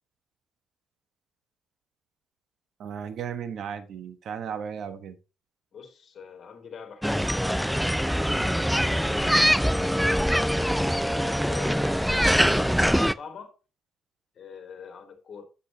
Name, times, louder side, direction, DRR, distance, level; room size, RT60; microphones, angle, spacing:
voice 1, 2.8-5.2, right 7 dB, 65° right, 1.2 m, -35 dB
voice 2, 5.7-10.0 11.1-13.5 14.3-15.4, left 6 dB, 55° left, 2.5 m, -44 dB
sound 1, 7.0-13.1, equal, ahead, 0.3 m, -23 dB
8.2 x 8.2 x 2.9 m
cardioid pair, 90°, 0 cm